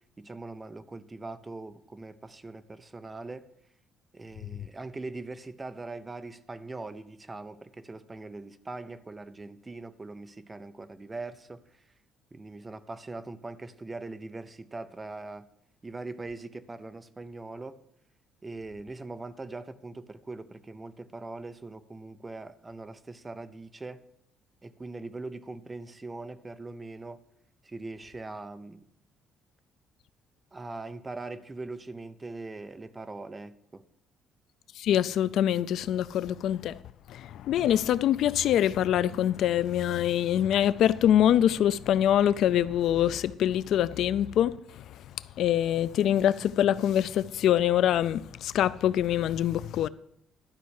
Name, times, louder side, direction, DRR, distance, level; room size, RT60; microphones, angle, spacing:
voice 1, 0.2-3.5 4.1-11.8 12.3-15.5 15.8-17.8 18.4-24.0 24.6-27.2 27.6-28.9 30.5-33.8, right 3 dB, 15° right, 0.5 m, -41 dB
voice 2, 34.8-36.8 37.1-44.6 45.4-49.9, left 11 dB, 55° left, 0.3 m, -24 dB
12.0 x 5.6 x 8.1 m
cardioid pair, 180°, 0 cm